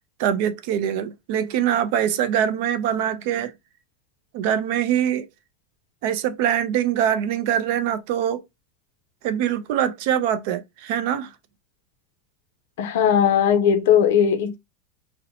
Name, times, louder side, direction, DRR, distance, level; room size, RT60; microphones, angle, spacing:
voice 1, 0.2-3.5 4.3-5.3 6.0-8.4 9.2-11.3, right 9 dB, 50° right, 0.4 m, -23 dB
voice 2, 12.8-14.6, left 8 dB, 70° left, 0.5 m, -18 dB
2.6 x 2.0 x 2.7 m
supercardioid pair, 175°, 0 cm